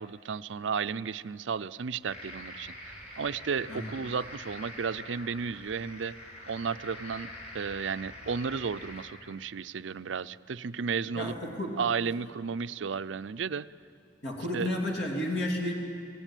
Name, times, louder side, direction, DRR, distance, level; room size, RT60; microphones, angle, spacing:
voice 1, 0.0-6.1 6.5-11.3 11.8-13.7 14.5-14.7, right 6 dB, 75° right, 14 dB, 0.5 m, -33 dB
sound 1, 2.1-9.0, left 1 dB, 35° left, 5.8 m, -45 dB
voice 2, 11.1-11.8 14.2-15.7, left 1 dB, 65° left, 0 dB, 3.0 m, -32 dB
25.5 x 17.0 x 9.1 m, 2.4 s
head